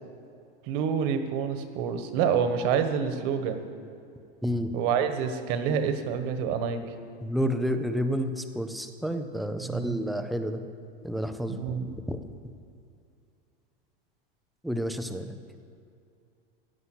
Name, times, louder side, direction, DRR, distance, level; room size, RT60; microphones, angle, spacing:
voice 1, 0.7-3.6 4.7-6.8 9.6-10.0 11.5-11.9, right 7 dB, 45° right, 8 dB, 1.4 m, -27 dB
voice 2, 7.2-10.6 11.0-11.6 12.1-12.2 14.6-15.4, equal, ahead, 7 dB, 0.3 m, -30 dB
16.5 x 9.7 x 7.9 m, 2.5 s
supercardioid pair, 165°, 30 cm